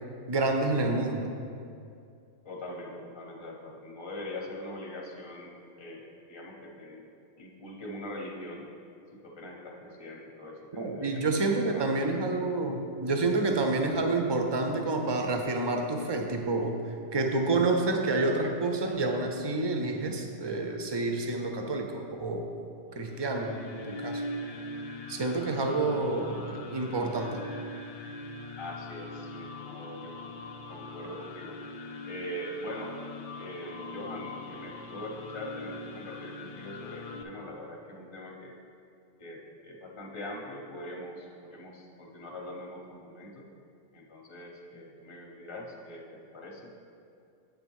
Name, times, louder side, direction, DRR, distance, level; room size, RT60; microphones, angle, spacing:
voice 1, 0.3-1.3 10.8-16.8 17.1-22.5 23.0-24.2 25.1-27.4, right 2 dB, 45° right, 3 dB, 0.3 m, -28 dB
voice 2, 2.4-7.0 7.4-8.7 9.1-12.2 28.6-30.4 30.7-31.6 32.0-32.9 33.4-38.5 39.2-43.5 43.9-46.7, left 1 dB, 30° left, -1 dB, 0.7 m, -42 dB
sound 1, 23.0-37.2, left 2 dB, 80° left, 0.3 m, -42 dB
8.3 x 3.4 x 6.2 m, 2.5 s
omnidirectional pair, 1.2 m